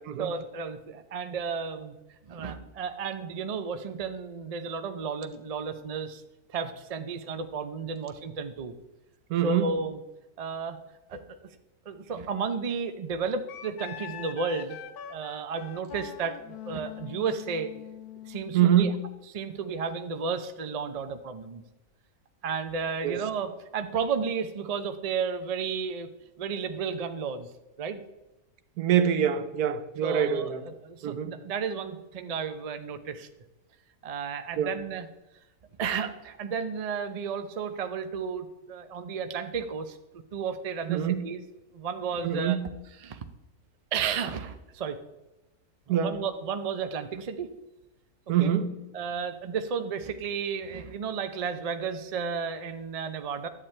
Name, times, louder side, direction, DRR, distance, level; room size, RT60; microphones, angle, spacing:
voice 1, 0.2-2.0 2.3-6.2 6.5-8.7 9.4-10.0 10.4-10.8 11.1-11.4 11.8-14.8 15.1-17.7 18.2-18.9 19.3-21.6 22.4-26.1 26.4-27.5 27.8-28.0 30.0-33.3 34.0-35.1 35.8-41.4 41.7-42.6 43.0-43.2 43.9-45.0 45.9-47.5 48.4-48.5 48.9-53.5, right 5 dB, 55° right, 8 dB, 0.4 m, -33 dB
voice 2, 9.3-9.8 18.5-19.0 23.0-23.2 28.8-30.6 31.0-31.3 34.6-34.7 40.9-41.2 42.2-42.7 45.9-46.2 48.3-48.8, right 9 dB, 80° right, 10 dB, 1.2 m, -25 dB
Wind instrument woodwind instrument, 13.5-18.9, left 11 dB, 80° left, 1.2 m, -43 dB
11.0 x 8.7 x 3.3 m, 1.0 s
omnidirectional pair, 1.6 m